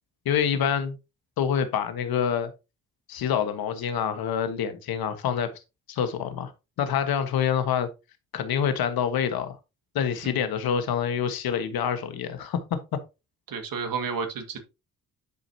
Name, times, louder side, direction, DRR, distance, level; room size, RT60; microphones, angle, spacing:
voice 1, 0.2-1.0 1.4-2.5 3.1-5.5 5.9-6.5 6.8-7.9 8.3-9.6 9.9-12.6 12.9-13.0, left 8 dB, 70° left, 1.5 m, -26 dB
voice 2, 13.5-14.6, right 5 dB, 65° right, 2.0 m, -31 dB
11.0 x 5.2 x 2.8 m
supercardioid pair, 55°, 37 cm